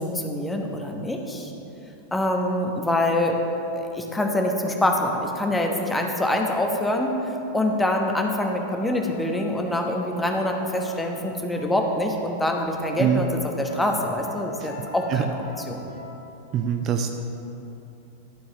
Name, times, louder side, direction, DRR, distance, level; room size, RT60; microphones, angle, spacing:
voice 1, 0.0-1.5 2.1-3.3 3.7-7.2 7.5-13.3 13.6-15.4 15.7-15.9, left 1 dB, 10° left, 2 dB, 1.0 m, -25 dB
sound 1, 8.7-16.1, left 5 dB, 75° left, 2.2 m, -44 dB
voice 2, 16.5-17.1, right 8 dB, 35° right, 5 dB, 0.5 m, -23 dB
12.0 x 4.7 x 6.6 m, 2.9 s
figure-of-eight pair, 90°, 0 cm